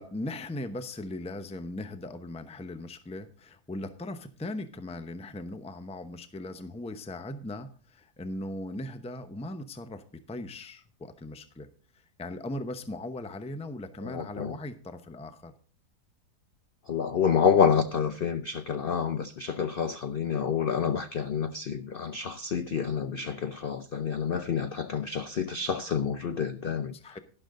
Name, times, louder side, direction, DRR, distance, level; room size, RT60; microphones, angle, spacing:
voice 1, 0.0-11.7 12.2-15.5 26.9-27.2, left 1 dB, 10° left, 9 dB, 0.4 m, -38 dB
voice 2, 14.0-14.5 16.9-26.9, left 7 dB, 75° left, 10 dB, 0.5 m, -28 dB
12.0 x 11.0 x 3.8 m, 0.39 s
omnidirectional pair, 1.8 m